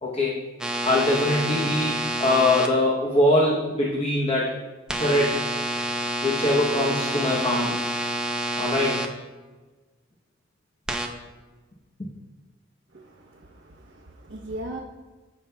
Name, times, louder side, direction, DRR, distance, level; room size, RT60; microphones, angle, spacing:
voice 1, 0.0-0.3 0.8-4.5 5.0-5.4 6.2-7.8 8.6-9.0, left 1 dB, 30° left, -3 dB, 0.9 m, -22 dB
sound 1, 0.6-2.7 4.9-9.0 10.9-11.1, right 1 dB, 5° right, 0.6 m, -28 dB
voice 2, 12.9-14.8, right 1 dB, 70° right, -1 dB, 0.8 m, -39 dB
14.5 x 5.4 x 2.3 m, 1.3 s
head